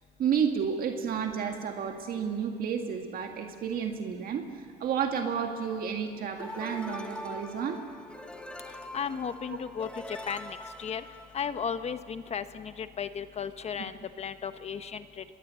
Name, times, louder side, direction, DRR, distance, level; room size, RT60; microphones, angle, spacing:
voice 1, 0.2-7.8, right 7 dB, 60° right, 4 dB, 1.9 m, -31 dB
sound 1, 6.4-11.9, left 1 dB, 5° left, 2.1 m, -43 dB
voice 2, 8.9-11.0 11.3-15.2, left 7 dB, 40° left, 10 dB, 1.1 m, -35 dB
26.0 x 21.5 x 7.7 m, 2.3 s
cardioid pair, 110°, 17 cm